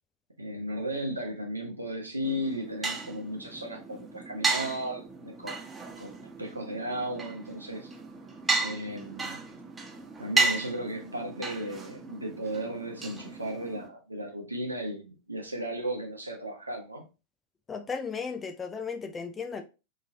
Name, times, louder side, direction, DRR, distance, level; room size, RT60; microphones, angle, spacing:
voice 1, 0.4-5.6 6.0-7.9 8.6-9.4 10.2-17.0, right 1 dB, 80° right, 0.7 m, -35 dB
sound 1, 2.2-13.9, right 3 dB, 15° right, 1.0 m, -34 dB
voice 2, 17.7-19.6, left 5 dB, 15° left, 0.4 m, -35 dB
2.9 x 2.8 x 2.7 m
figure-of-eight pair, 90°, 0 cm